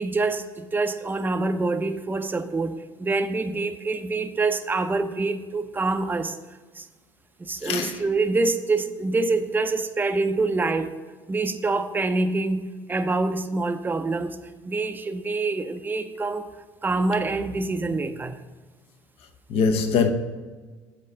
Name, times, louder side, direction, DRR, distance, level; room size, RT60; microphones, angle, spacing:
voice 1, 0.0-6.4 6.8-6.9 7.4-11.0 11.3-14.4 14.6-16.5 16.8-18.4, right 3 dB, 20° right, 0.6 m, -26 dB
voice 2, 7.6-8.0 19.5-20.1, left 5 dB, 65° left, 0.8 m, -22 dB
8.0 x 4.1 x 6.3 m
hypercardioid pair, 70°, 11 cm